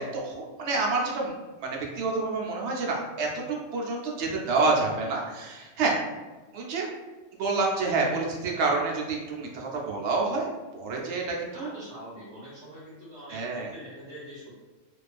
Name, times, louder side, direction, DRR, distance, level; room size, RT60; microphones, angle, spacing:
voice 1, 0.0-5.9 6.5-6.9 7.4-10.5 10.7-11.7 13.3-13.7, right 3 dB, 70° right, -1 dB, 0.8 m, -28 dB
voice 2, 11.5-14.5, equal, 35° right, -10 dB, 0.9 m, -44 dB
2.3 x 2.3 x 2.4 m, 1.2 s
omnidirectional pair, 1.3 m